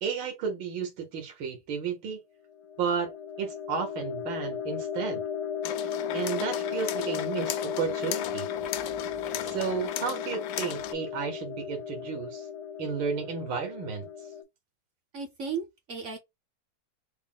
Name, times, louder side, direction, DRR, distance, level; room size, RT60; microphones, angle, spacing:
voice 1, 0.0-2.2 2.8-5.2 6.1-8.5 9.4-12.5 12.8-14.1, right 6 dB, 80° right, 1.7 m, -33 dB
sound 1, 2.5-14.4, left 8 dB, 65° left, 0.6 m, -35 dB
sound 2, 5.6-10.9, left 12 dB, 90° left, 1.4 m, -37 dB
voice 2, 15.1-16.2, right 5 dB, 60° right, 0.8 m, -35 dB
4.0 x 2.1 x 3.7 m
omnidirectional pair, 2.1 m